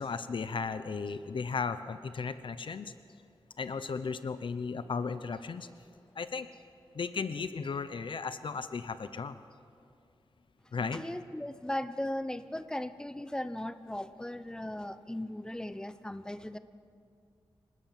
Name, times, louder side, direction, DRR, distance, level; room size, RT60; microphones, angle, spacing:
voice 1, 0.0-2.9 3.6-5.7 6.2-6.5 6.9-9.4 10.7-11.0, left 5 dB, 60° left, 12 dB, 0.8 m, -35 dB
voice 2, 10.9-16.6, left 1 dB, 10° left, 12 dB, 0.8 m, -37 dB
26.5 x 19.0 x 7.6 m, 2.4 s
wide cardioid pair, 125°, 9 cm